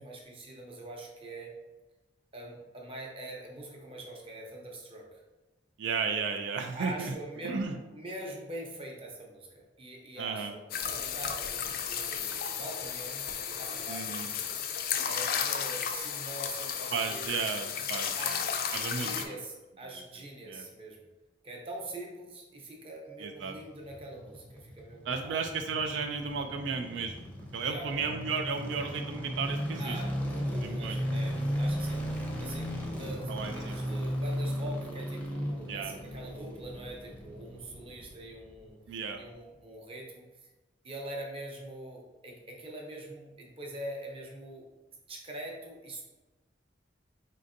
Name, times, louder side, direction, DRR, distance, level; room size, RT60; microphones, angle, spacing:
voice 1, 0.0-1.5 2.3-5.2 6.7-7.7 7.9-14.2 15.1-17.2 18.2-18.5 18.9-21.0 21.4-25.4 27.6-28.1 29.8-32.0 32.4-38.8 39.2-40.3 40.8-44.7 45.1-46.0, right 1 dB, 30° right, 0 dB, 0.7 m, -43 dB
voice 2, 5.8-7.2 7.4-7.8 10.2-10.5 13.9-14.3 16.9-19.2 20.5-20.7 23.2-23.6 25.1-30.0 30.4-31.1 33.3-33.9 35.7-35.9 38.9-39.2, right 5 dB, 80° right, 5 dB, 0.3 m, -34 dB
sound 1, 10.7-19.2, left 7 dB, 55° left, 0.4 m, -34 dB
sound 2, 23.6-38.8 39.1-39.2, equal, 10° left, 0.6 m, -36 dB
4.3 x 3.8 x 2.6 m, 1.1 s
head